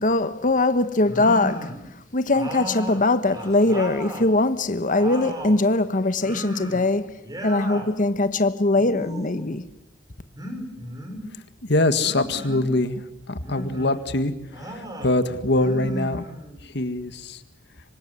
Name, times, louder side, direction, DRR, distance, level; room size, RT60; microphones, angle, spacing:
voice 1, 0.0-1.7 2.1-7.2 7.4-9.6, left 2 dB, 45° left, 1.2 m, -21 dB
sound 1, 1.0-1.8 2.3-4.3 4.7-5.6 6.2-6.9 7.2-7.9 8.7-9.5 10.4-11.3 12.0-12.7 13.4-14.0 14.5-15.1 15.5-16.6, equal, 20° right, 5.5 m, -35 dB
voice 2, 11.6-16.3 16.6-17.4, left 2 dB, 65° left, 1.8 m, -24 dB
26.5 x 25.5 x 8.2 m
head